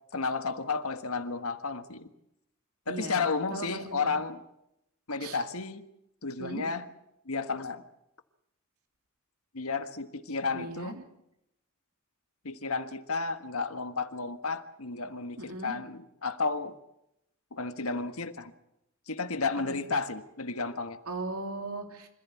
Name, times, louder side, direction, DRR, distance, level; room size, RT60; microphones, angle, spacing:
voice 1, 0.1-2.1 2.9-4.4 5.1-5.8 6.2-6.8 7.2-7.8 9.5-11.0 12.4-16.7 17.5-18.5 19.1-21.0, left 4 dB, 75° left, 9 dB, 1.5 m, -32 dB
voice 2, 2.9-4.2 5.2-5.4 6.4-6.7 10.5-11.0 15.4-15.8 19.7-19.8 21.0-22.1, right 2 dB, 90° right, 4 dB, 3.4 m, -38 dB
26.0 x 15.0 x 8.4 m, 0.84 s
head